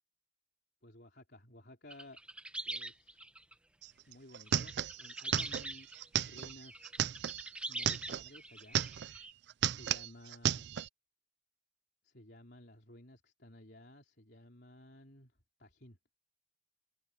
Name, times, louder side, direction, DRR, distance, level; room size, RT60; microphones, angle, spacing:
voice 1, 0.8-2.2 2.6-3.2 4.1-5.9 6.2-7.0 7.7-8.8 9.8-10.7 12.0-15.3 15.6-16.0, left 1 dB, 55° left, 3.9 m, -56 dB
sound 1, 1.9-3.5 4.5-9.3, right 2 dB, 5° right, 1.2 m, -43 dB
sound 2, 3.8-8.3 8.6-9.2 9.5-10.9, right 9 dB, 60° right, 0.4 m, -34 dB
head